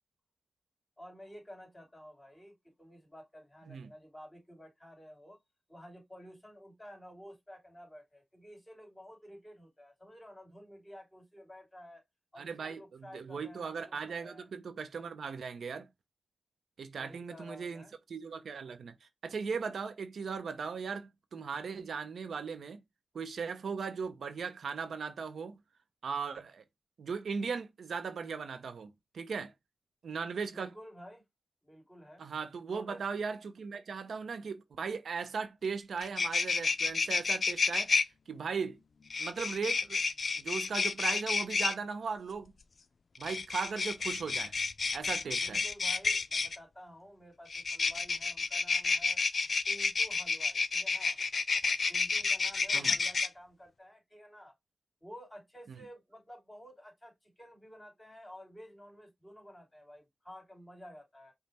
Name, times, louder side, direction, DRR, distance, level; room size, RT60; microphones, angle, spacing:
voice 1, 1.0-5.4 5.7-12.0 12.3-14.5 17.0-17.9 30.5-31.2 31.6-32.3 32.7-33.0 45.4-49.2 49.7-51.2 51.9-54.5 55.0-61.3, equal, 20° left, 2.9 m, -52 dB
voice 2, 12.4-15.9 16.8-22.8 23.1-25.6 26.0-26.6 27.0-28.9 29.1-29.5 30.0-30.7 32.2-37.9 38.3-38.8 39.2-40.0 40.4-42.5 43.2-44.5 44.9-45.6 52.7-52.9, right 5 dB, 85° right, 0.6 m, -38 dB
sound 1, 35.6-35.7 36.0-38.0 39.1-41.7 43.2-46.6 47.5-53.3, left 4 dB, 60° left, 0.4 m, -30 dB
5.2 x 2.1 x 4.2 m
cardioid pair, 65°, 0 cm